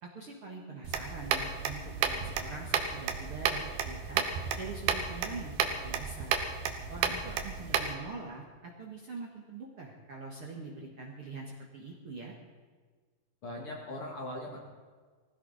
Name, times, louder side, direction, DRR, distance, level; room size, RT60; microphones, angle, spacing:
voice 1, 0.0-4.2 4.6-6.4 6.9-12.4, right 3 dB, 50° right, -2 dB, 1.9 m, -43 dB
sound 1, 0.8-7.9, right 7 dB, 85° right, 3.0 m, -33 dB
voice 2, 13.4-14.6, left 1 dB, 45° left, -1 dB, 2.3 m, -39 dB
20.0 x 15.5 x 4.1 m, 1.5 s
omnidirectional pair, 4.3 m